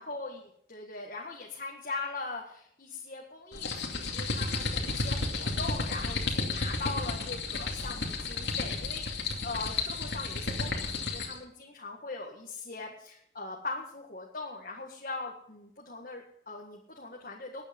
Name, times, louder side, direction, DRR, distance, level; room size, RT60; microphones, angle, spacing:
voice 1, 0.0-17.7, left 3 dB, 50° left, -1 dB, 1.8 m, -40 dB
sound 1, 3.5-11.4, left 3 dB, 80° left, 2.5 m, -32 dB
20.0 x 8.8 x 5.3 m, 0.69 s
head